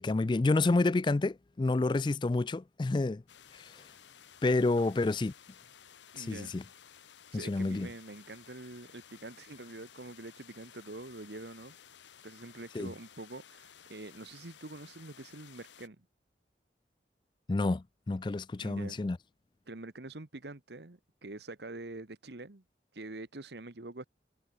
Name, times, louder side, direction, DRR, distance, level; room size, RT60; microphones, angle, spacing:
voice 1, 0.0-3.2 3.5-3.8 4.4-5.3 6.2-6.6 7.3-7.9 12.7-12.9 17.5-19.2, left 2 dB, 25° left, 0.3 m, -29 dB
sound 1, 3.3-15.9, left 8 dB, 85° left, 1.1 m, -56 dB
voice 2, 6.1-6.6 7.3-11.7 12.2-16.1 18.6-19.0 19.7-22.6 22.9-24.0, right 2 dB, 70° right, 1.4 m, -45 dB
head